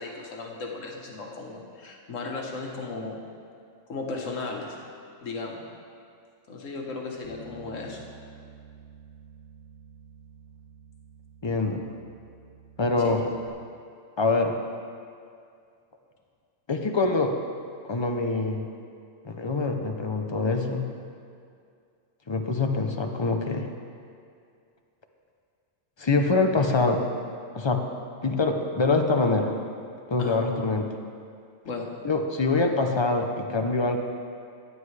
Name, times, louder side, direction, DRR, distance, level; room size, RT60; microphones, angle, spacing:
voice 1, 0.0-3.2 3.9-4.8 5.2-5.6 6.5-8.0 13.0-13.2 30.2-30.4 31.6-31.9, left 3 dB, 80° left, 0 dB, 1.6 m, -35 dB
Bass guitar, 7.2-13.5, right 5 dB, 10° left, 2.0 m, -50 dB
voice 2, 11.4-11.8 12.8-13.2 14.2-14.5 16.7-17.3 17.8-18.6 19.2-20.8 22.3-23.7 26.0-27.1 27.5-27.8 28.2-29.6 30.1-30.9 32.0-34.0, left 3 dB, 35° left, 4 dB, 0.5 m, -24 dB
15.0 x 9.6 x 3.3 m, 2.4 s
omnidirectional pair, 1.3 m